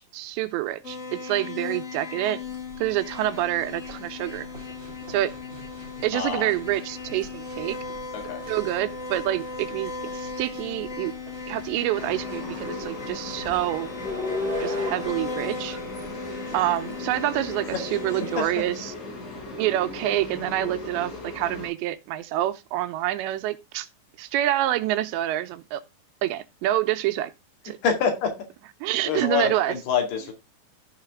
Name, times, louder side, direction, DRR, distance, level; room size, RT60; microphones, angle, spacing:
voice 1, 0.0-2.4 2.8-4.5 5.1-5.3 6.0-7.8 8.5-11.1 11.5-13.9 14.6-15.8 16.5-18.8 19.6-23.9 24.2-25.8 26.2-27.3 27.6-27.8 28.8-29.7, right 14 dB, 90° right, 3.0 m, -27 dB
sound 1, 0.8-18.4, left 4 dB, 45° left, 1.0 m, -37 dB
sound 2, 2.5-17.0, left 2 dB, 30° right, 1.1 m, -39 dB
voice 2, 6.1-6.5 8.1-8.4 17.7-17.8 18.4-18.8 27.8-28.5 29.0-30.3, left 6 dB, 65° left, 4.0 m, -26 dB
sound 3, 11.9-21.7, left 2 dB, 80° left, 9.5 m, -38 dB
14.5 x 5.7 x 3.6 m
omnidirectional pair, 5.1 m